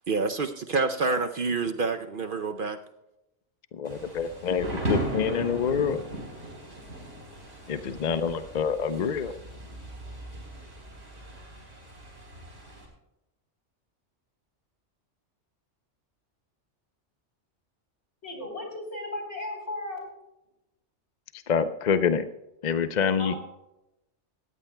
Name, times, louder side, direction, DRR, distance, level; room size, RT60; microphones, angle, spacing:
voice 1, 0.1-2.8, right 4 dB, 55° right, 0.7 m, -27 dB
voice 2, 3.7-6.0 7.7-9.3 21.5-22.3 22.6-23.3, left 6 dB, 50° left, 0.6 m, -26 dB
Thunder / Rain, 3.8-12.9, right 1 dB, 90° right, 4.1 m, -37 dB
voice 3, 18.2-20.1 23.2-23.4, left 1 dB, 65° left, 4.1 m, -35 dB
18.5 x 14.5 x 2.2 m
omnidirectional pair, 1.2 m